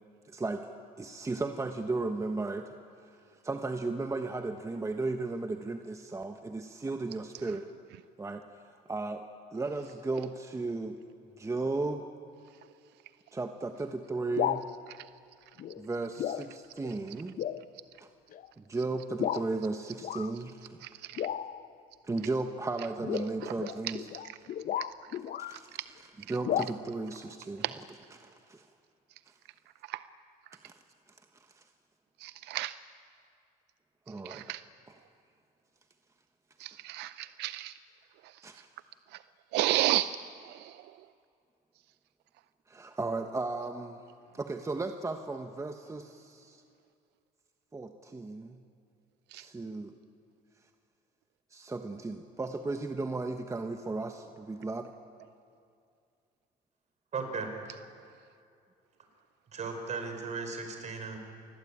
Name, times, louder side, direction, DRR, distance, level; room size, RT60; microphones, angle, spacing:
voice 1, 0.3-0.7 1.0-2.7 3.0-3.2 3.4-7.7 8.2-8.4 8.7-11.0 11.4-12.0 13.3-14.7 15.8-17.3 18.0-18.1 18.6-20.8 22.0-24.1 25.4-28.7 30.6-30.7 31.5-31.6 34.1-34.5 34.9-35.0 38.4-38.7 42.7-44.0 44.3-46.6 47.7-48.6 49.3-49.9 51.5-54.9, right 3 dB, 15° right, 6 dB, 1.3 m, -35 dB
sound 1, 14.2-14.7 15.6-15.9 16.2-16.5 16.8-16.9 17.4-17.6 18.3-18.5 19.2-19.5 20.0-20.3 21.2-21.7 23.0-25.6 26.4-26.6, left 10 dB, 55° left, 0.9 m, -33 dB
voice 2, 32.2-32.7 34.3-34.6 36.6-37.7 39.5-40.1 49.3-49.4, right 15 dB, 85° right, 14 dB, 0.6 m, -30 dB
voice 3, 57.1-57.5 59.5-61.2, right 4 dB, 45° right, 5 dB, 5.1 m, -36 dB
28.0 x 21.0 x 8.8 m, 2.4 s
cardioid pair, 110°, 17 cm